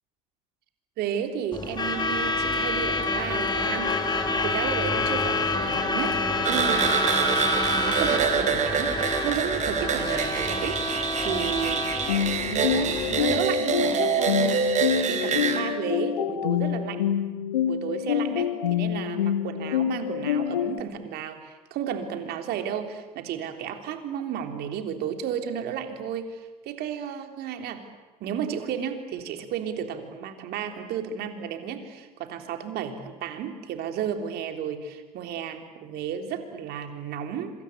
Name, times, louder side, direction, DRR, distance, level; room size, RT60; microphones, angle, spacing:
voice 1, 1.0-7.3 7.8-11.9 12.4-17.0 17.7-27.8 28.2-37.5, right 8 dB, 55° right, 6 dB, 3.6 m, -33 dB
Truck / Alarm, 1.5-13.5, left 2 dB, 20° left, 3.3 m, -28 dB
sound 1, 6.4-15.6, right 6 dB, 40° right, 3.8 m, -26 dB
sound 2, 12.1-20.8, left 9 dB, 80° left, 1.5 m, -27 dB
26.5 x 25.0 x 8.4 m, 1.2 s
hypercardioid pair, 70°, 19 cm